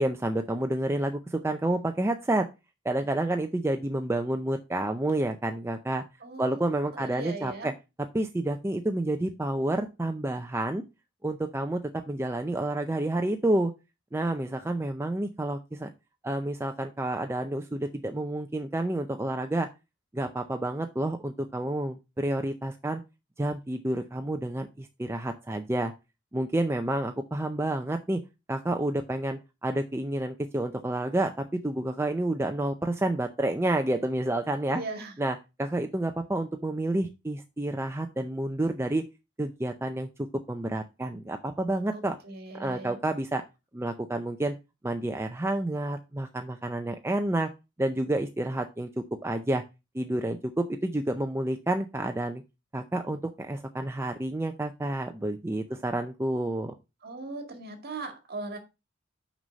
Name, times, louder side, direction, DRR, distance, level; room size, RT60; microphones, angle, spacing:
voice 1, 0.0-2.5 2.8-6.0 6.4-7.7 8.1-10.8 11.2-13.7 14.1-15.9 16.2-19.7 20.1-23.0 23.4-25.9 26.3-28.2 28.5-34.8 35.2-39.1 39.4-42.2 42.6-43.4 43.7-44.5 44.8-47.5 47.8-49.6 49.9-52.4 52.7-56.7, right 1 dB, 15° right, 0.5 m, -29 dB
voice 2, 6.2-6.6 6.9-7.7 34.7-35.2 41.9-43.1 55.7-55.8 57.0-58.6, right 3 dB, 50° right, 2.0 m, -39 dB
6.1 x 5.5 x 5.2 m
head